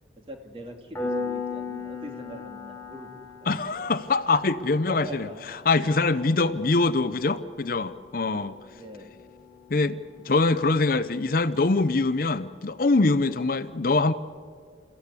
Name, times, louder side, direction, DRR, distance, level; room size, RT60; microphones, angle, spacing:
voice 1, 0.2-3.2 3.7-3.9 4.9-5.4 6.3-6.6 8.3-9.1, equal, 30° right, 3 dB, 2.4 m, -43 dB
Piano, 1.0-11.3, left 4 dB, 10° left, 4.8 m, -39 dB
voice 2, 3.5-8.6 9.7-10.0 10.2-14.1, left 3 dB, 50° left, 13 dB, 0.6 m, -24 dB
29.0 x 15.0 x 8.3 m, 2.1 s
head